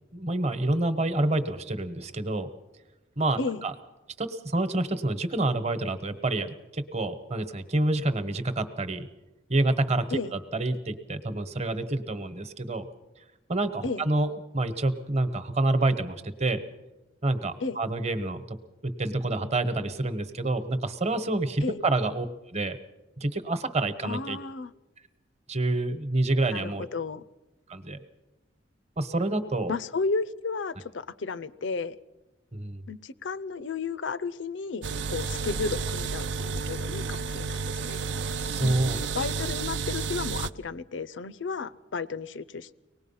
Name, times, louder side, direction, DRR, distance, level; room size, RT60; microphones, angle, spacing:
voice 1, 0.1-2.5 3.2-3.7 4.2-9.1 9.5-12.9 13.5-16.6 17.2-18.4 18.8-22.8 23.2-24.4 25.5-26.8 27.7-28.0 29.0-29.7 32.5-32.8 38.4-39.0, right 2 dB, 35° right, 11 dB, 1.1 m, -28 dB
voice 2, 24.0-24.7 26.5-27.2 29.7-32.0 32.9-38.1 38.6-38.8 39.1-42.7, left 4 dB, 75° left, 17 dB, 0.6 m, -33 dB
sound 1, 34.8-40.5, right 4 dB, 70° right, 0.6 m, -31 dB
24.0 x 19.0 x 5.6 m, 1.0 s
head